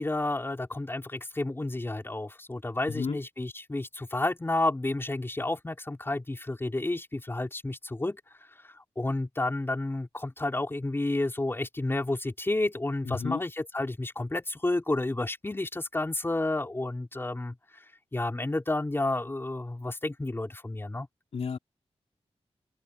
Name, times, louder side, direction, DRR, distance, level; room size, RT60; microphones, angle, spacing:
voice 1, 0.0-8.2 8.6-17.5 18.1-21.1, left 2 dB, 20° left, 4.0 m, -31 dB
voice 2, 2.9-3.2 13.0-13.4 21.3-21.6, left 5 dB, 70° left, 3.9 m, -32 dB
wide cardioid pair, 115°, 11 cm